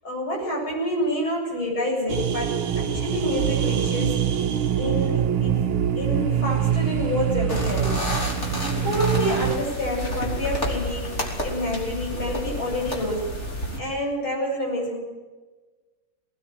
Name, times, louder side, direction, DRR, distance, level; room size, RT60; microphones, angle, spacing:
voice 1, 0.0-4.2 4.8-5.6 6.0-8.0 8.6-13.3 13.8-15.0, equal, 70° left, -1 dB, 8.7 m, -28 dB
sound 1, 2.1-9.5, right 9 dB, 75° right, 1.8 m, -24 dB
sound 2, 7.5-13.8, equal, 30° left, 3.9 m, -30 dB
21.0 x 19.0 x 7.8 m, 1.3 s
omnidirectional pair, 2.3 m